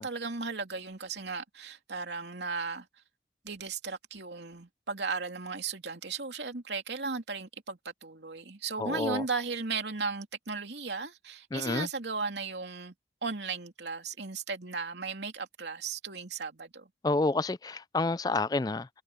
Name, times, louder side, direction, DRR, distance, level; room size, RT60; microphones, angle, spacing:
voice 1, 0.0-2.9 3.4-12.9 13.2-16.9, right 4 dB, 85° right, 2.9 m, -36 dB
voice 2, 8.8-9.2 11.5-11.9 17.0-18.9, left 3 dB, 20° left, 0.3 m, -29 dB
head